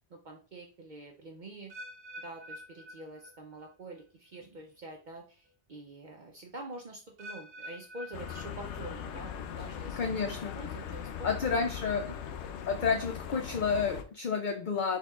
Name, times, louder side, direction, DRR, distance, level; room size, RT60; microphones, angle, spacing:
voice 1, 0.1-1.7 2.2-10.0 10.3-11.5 12.1-12.2, right 2 dB, 50° right, 1 dB, 0.7 m, -46 dB
sound 1, 1.7-3.7 4.0-4.4 5.1-5.2 7.2-9.1 9.5-9.9 10.5-10.6, equal, 90° right, 1.1 m, -48 dB
sound 2, 8.1-14.0, left 8 dB, 90° left, 0.9 m, -40 dB
voice 2, 10.0-10.6 11.2-12.1 12.7-15.0, left 5 dB, 55° left, 6 dB, 0.6 m, -30 dB
4.5 x 4.4 x 2.3 m, 0.36 s
omnidirectional pair, 1.1 m